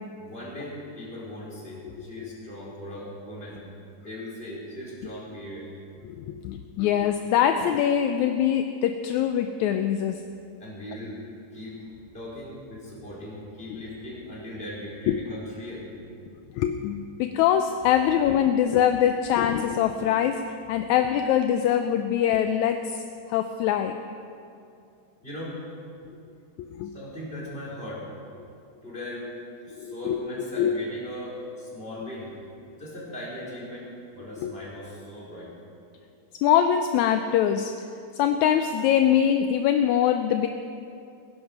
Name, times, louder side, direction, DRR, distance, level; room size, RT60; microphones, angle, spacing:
voice 1, 0.2-3.6 4.0-5.7 10.6-11.2 11.5-16.0 16.3-16.4 25.2-25.6 26.9-28.1 28.8-29.3 29.7-32.4 32.7-35.6, left 1 dB, 15° left, -7 dB, 4.5 m, -39 dB
voice 2, 6.1-10.2 15.1-15.2 16.5-20.4 20.7-23.0 23.3-24.0 26.1-26.2 26.6-26.9 29.8-30.2 30.6-30.8 34.4-34.5 36.4-37.7 38.2-40.5, left 9 dB, 80° left, 7 dB, 1.7 m, -23 dB
19.5 x 11.0 x 5.9 m, 2.5 s
omnidirectional pair, 3.8 m